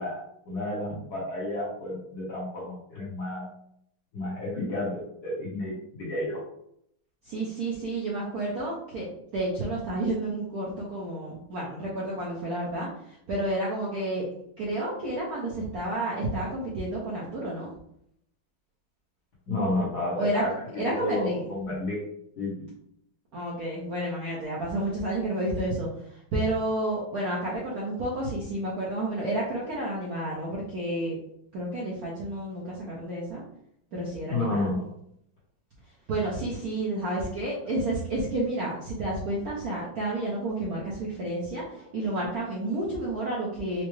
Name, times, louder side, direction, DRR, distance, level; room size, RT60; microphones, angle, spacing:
voice 1, 0.0-3.5 4.1-6.4 19.5-22.0 22.4-22.7 34.3-34.9, left 2 dB, 55° left, -5 dB, 1.4 m, -31 dB
voice 2, 7.2-9.1 9.3-14.3 14.6-17.7 20.1-20.4 20.8-21.4 23.3-31.2 31.5-33.4 33.9-34.7 36.1-43.8, right 1 dB, 65° right, -6 dB, 0.9 m, -30 dB
4.6 x 2.0 x 3.1 m, 0.73 s
omnidirectional pair, 2.4 m